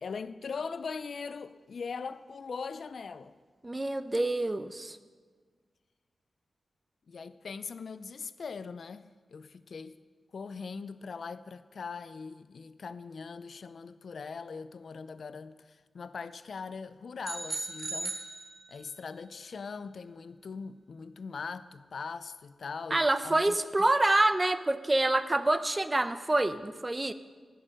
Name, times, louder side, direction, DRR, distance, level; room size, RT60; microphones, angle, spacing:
voice 1, 0.0-3.3 7.1-10.0 10.3-18.2 18.7-23.6, left 5 dB, 70° left, 0.5 m, -41 dB
voice 2, 3.6-5.0 22.9-27.1, right 2 dB, 25° right, 0.7 m, -27 dB
sound 1, 17.2-19.1, right 2 dB, 45° right, 1.6 m, -38 dB
16.0 x 6.6 x 6.5 m
cardioid pair, 70°, 0 cm